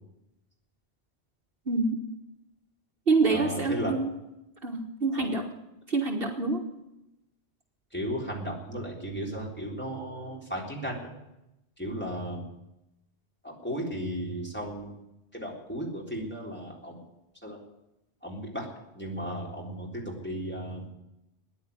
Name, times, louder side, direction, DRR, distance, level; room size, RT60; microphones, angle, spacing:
voice 1, 1.7-2.0 3.1-4.1 4.6-5.4 5.9-6.6, right 3 dB, 55° right, 2 dB, 1.7 m, -26 dB
voice 2, 3.2-4.0 5.2-5.3 7.9-11.1 11.8-12.5 13.4-15.0 15.3-17.0 17.4-17.6 18.2-18.7 18.9-20.9, equal, 10° left, -3 dB, 3.8 m, -35 dB
14.0 x 10.0 x 9.6 m, 0.90 s
omnidirectional pair, 1.2 m